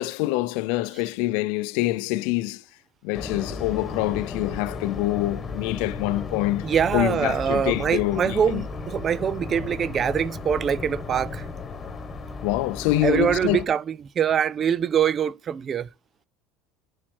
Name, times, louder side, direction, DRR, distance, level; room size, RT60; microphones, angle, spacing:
voice 1, 0.0-2.6 3.0-6.7 6.9-8.6 12.4-13.6, left 17 dB, 70° left, 0.5 m, -25 dB
sound 1, 3.1-13.6, left 4 dB, 25° left, 1.5 m, -35 dB
voice 2, 6.6-11.5 13.0-15.9, right 8 dB, 35° right, 0.4 m, -24 dB
10.5 x 4.5 x 4.6 m
supercardioid pair, 120°, 0 cm